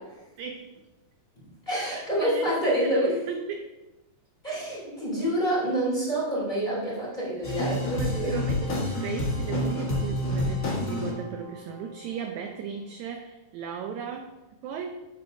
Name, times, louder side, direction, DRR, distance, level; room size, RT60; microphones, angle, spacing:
voice 1, 0.4-0.7 1.7-3.7 7.4-7.6 7.9-14.3 14.6-15.1, right 6 dB, 80° right, 5 dB, 1.7 m, -36 dB
voice 2, 1.7-3.2 4.4-8.4, equal, 15° left, -8 dB, 2.8 m, -27 dB
sound 1, 7.4-11.9, left 1 dB, 40° left, 1.2 m, -29 dB
10.0 x 8.2 x 2.7 m, 1.1 s
omnidirectional pair, 3.9 m